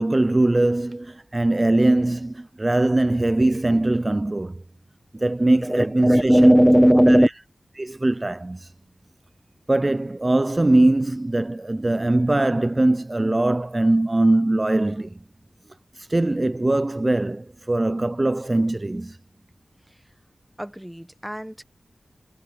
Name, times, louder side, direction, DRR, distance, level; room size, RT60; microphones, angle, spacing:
voice 1, 0.0-4.6 5.1-6.5 7.1-7.2 7.8-8.7 9.7-15.1 16.0-19.2, right 2 dB, 35° right, 0.4 m, -21 dB
voice 2, 5.6-7.3 20.6-21.6, equal, 5° right, 1.5 m, -17 dB
cardioid pair, 40°, 0 cm